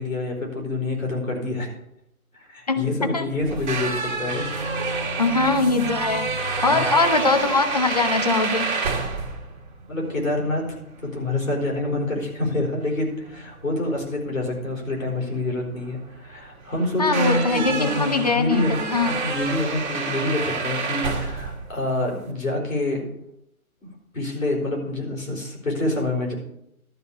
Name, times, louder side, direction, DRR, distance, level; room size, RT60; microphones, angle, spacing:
voice 1, 0.0-1.7 2.3-4.5 6.7-6.9 9.9-18.8 19.1-23.1 24.1-26.3, left 2 dB, 65° left, -1 dB, 4.0 m, -27 dB
voice 2, 2.7-3.3 5.2-6.3 6.6-8.7 17.0-19.1, left 3 dB, 30° left, 8 dB, 0.6 m, -22 dB
sound 1, 3.4-22.3, right 4 dB, 30° right, 1.7 m, -29 dB
12.5 x 4.2 x 8.2 m, 0.79 s
figure-of-eight pair, 150°, 44 cm